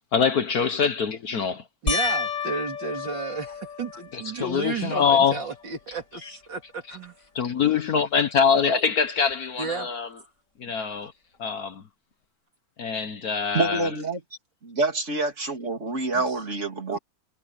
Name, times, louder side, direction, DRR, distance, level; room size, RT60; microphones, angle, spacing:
voice 1, 0.1-1.6 4.1-5.5 5.9-6.3 6.8-7.0 7.3-10.2 10.6-11.1 11.4-11.8 12.8-13.9, left 6 dB, 55° left, 1.4 m, -24 dB
voice 2, 1.8-7.2 9.6-9.9 10.6-10.7 16.1-16.3 16.9-17.0, right 4 dB, 65° right, 3.8 m, -33 dB
sound 1, 1.9-4.5 5.1-5.6 6.0-6.1 9.3-9.4, left 5 dB, 40° left, 2.9 m, -31 dB
voice 3, 13.5-14.2 14.6-17.0, right 3 dB, 35° right, 3.3 m, -27 dB
omnidirectional pair, 2.1 m